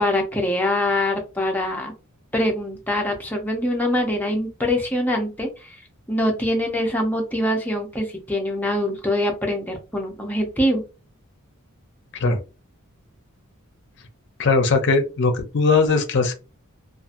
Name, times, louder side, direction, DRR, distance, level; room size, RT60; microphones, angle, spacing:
voice 1, 0.0-1.9 2.3-5.7 6.1-10.8, left 1 dB, 10° left, 1 dB, 0.6 m, -24 dB
voice 2, 14.4-16.3, left 4 dB, 55° left, 6 dB, 0.6 m, -19 dB
2.7 x 2.5 x 2.5 m, 0.30 s
head